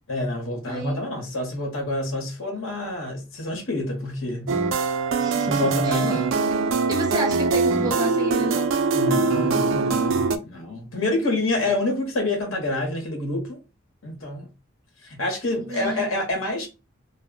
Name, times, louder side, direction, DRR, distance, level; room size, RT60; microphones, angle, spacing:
voice 1, 0.1-4.5 5.4-6.3 8.9-13.6 14.0-14.5 15.0-16.7, left 2 dB, 80° left, 1.0 m, -27 dB
voice 2, 0.7-1.0 5.2-6.2 6.9-8.7 11.7-11.8 15.6-16.1, right 1 dB, 20° right, 0.8 m, -30 dB
sound 1, 4.5-10.4, right 4 dB, 70° right, 0.4 m, -22 dB
2.1 x 2.0 x 3.6 m
head